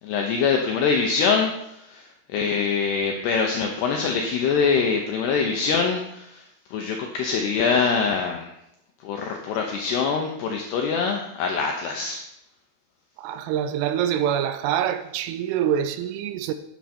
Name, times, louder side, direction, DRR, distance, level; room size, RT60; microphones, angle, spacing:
voice 1, 0.0-8.6 9.0-12.2, left 5 dB, 85° left, 2.3 m, -24 dB
voice 2, 13.2-16.5, right 9 dB, 85° right, 3.0 m, -25 dB
9.3 x 9.0 x 4.4 m
omnidirectional pair, 5.8 m